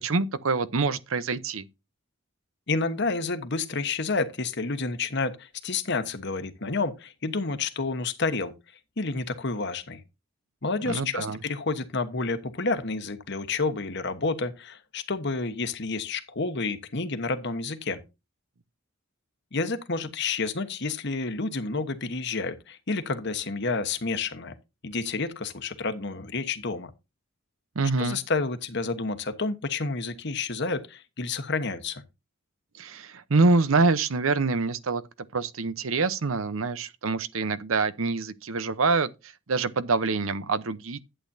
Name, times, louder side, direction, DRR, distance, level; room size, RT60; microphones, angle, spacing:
voice 1, 0.0-1.6 10.9-11.4 27.8-28.2 32.8-35.0 35.3-39.1 39.5-41.0, right 3 dB, 75° right, 0.8 m, -25 dB
voice 2, 2.7-8.5 9.0-10.0 10.6-18.0 19.5-24.5 24.8-26.9 28.0-32.0, left 3 dB, 55° left, 1.2 m, -29 dB
11.5 x 8.6 x 2.7 m
head